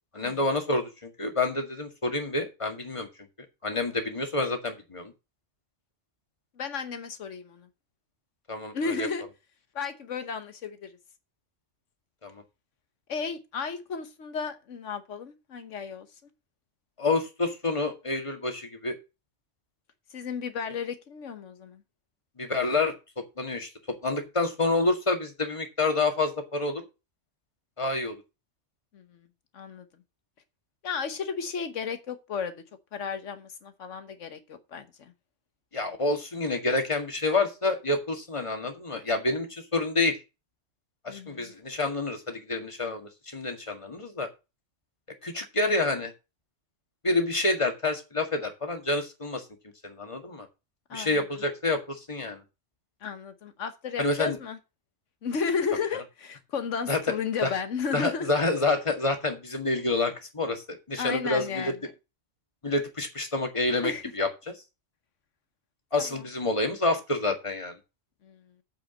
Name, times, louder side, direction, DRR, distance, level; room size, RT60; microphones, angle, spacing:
voice 1, 0.1-3.1 3.6-5.1 8.5-9.1 12.2-12.4 17.0-18.9 22.4-26.9 27.8-28.2 35.7-40.2 41.0-44.3 45.2-46.1 47.0-49.4 49.8-50.5 50.9-52.4 54.0-54.4 56.9-57.2 57.4-57.5 57.9-61.7 62.6-64.5 65.9-67.8, left 2 dB, 25° left, 2.0 m, -28 dB
voice 2, 6.6-7.7 8.7-9.2 9.7-11.0 13.1-16.1 20.1-21.8 28.9-29.2 29.5-29.8 30.8-32.5 32.9-35.1 41.1-41.5 50.9-51.3 53.0-54.6 55.2-58.3 61.0-61.7 63.8-64.0 66.0-66.1 68.2-68.4, left 5 dB, 85° left, 1.4 m, -33 dB
9.1 x 5.1 x 7.4 m
omnidirectional pair, 1.2 m